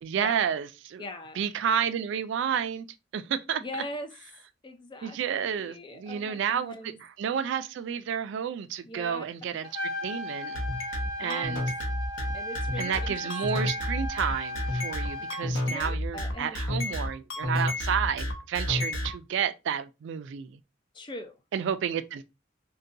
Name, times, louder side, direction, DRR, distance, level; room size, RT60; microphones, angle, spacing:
voice 1, 0.0-1.0 1.4-2.9 3.1-3.6 5.0-6.8 7.2-9.7 10.0-10.6 11.2-11.6 12.8-20.6 21.5-22.2, right 8 dB, 65° right, 0.3 m, -30 dB
voice 2, 1.0-1.4 3.6-4.1 4.6-7.0 8.8-9.3 9.5-9.6 11.2-11.7 12.3-13.2 13.5-13.6 15.2-15.3 15.7-16.6 20.9-21.4, left 1 dB, 25° left, 0.4 m, -41 dB
Trumpet, 9.6-15.4, left 1 dB, 20° right, 0.9 m, -36 dB
sound 1, 10.5-19.1, left 1 dB, 70° left, 0.9 m, -30 dB
3.8 x 2.2 x 2.5 m
head